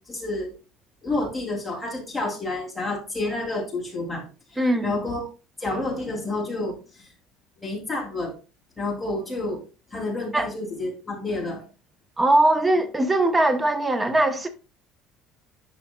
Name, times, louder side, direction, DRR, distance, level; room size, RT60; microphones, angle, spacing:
voice 1, 0.1-0.5 1.0-4.2 4.5-5.2 5.6-7.1 7.6-8.4 8.8-9.6 9.9-11.6, left 2 dB, 5° left, 2.7 m, -29 dB
voice 2, 4.6-4.9 10.3-10.5 12.2-14.5, right 1 dB, 10° right, 0.8 m, -20 dB
11.0 x 5.0 x 2.3 m
cardioid pair, 160°, 0 cm